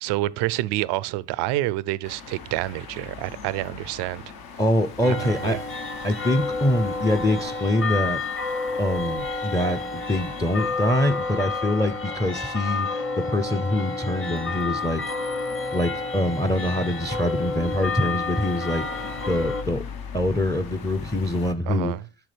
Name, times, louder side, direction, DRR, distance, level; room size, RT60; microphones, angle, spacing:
voice 1, 0.0-4.2 5.0-5.6 21.7-22.0, right 16 dB, 90° right, 0.5 m, -28 dB
sound 1, 2.0-21.5, left 6 dB, 60° left, 1.1 m, -41 dB
voice 2, 4.6-5.7 6.0-8.2 8.8-12.9 13.2-15.0 15.7-18.9 19.3-19.8 20.1-21.9, left 1 dB, 10° left, 0.6 m, -24 dB
sound 2, 5.0-19.6, left 3 dB, 30° left, 1.3 m, -30 dB
10.5 x 6.0 x 3.3 m
supercardioid pair, 75°, 40 cm